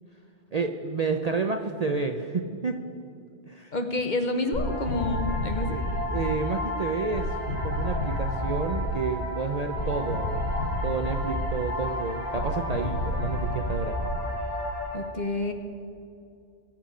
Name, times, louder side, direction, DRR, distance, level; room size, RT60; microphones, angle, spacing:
voice 1, 0.5-2.8 3.5-3.8 5.6-5.8 6.1-7.3 7.6-10.5 10.8-14.0, right 4 dB, 45° right, 5 dB, 0.5 m, -30 dB
voice 2, 3.7-5.8 14.9-15.5, left 2 dB, 45° left, 6 dB, 1.0 m, -29 dB
sound 1, 4.5-15.0, left 1 dB, 70° left, 3.7 m, -30 dB
21.5 x 7.4 x 5.0 m, 2.5 s
omnidirectional pair, 1.2 m